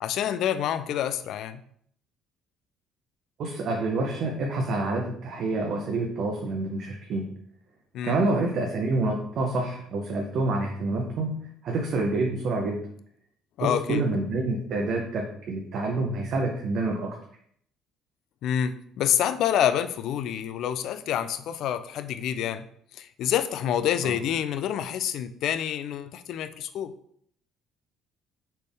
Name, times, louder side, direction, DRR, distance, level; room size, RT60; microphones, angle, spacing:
voice 1, 0.0-1.6 7.9-8.2 13.6-14.0 18.4-22.7 23.0-26.9, left 10 dB, 70° left, 11 dB, 0.3 m, -27 dB
voice 2, 3.4-7.3 8.0-12.9 13.6-17.2 24.0-24.1, right 2 dB, 60° right, 1 dB, 0.7 m, -27 dB
4.2 x 3.5 x 3.4 m, 0.64 s
supercardioid pair, 80°, 0 cm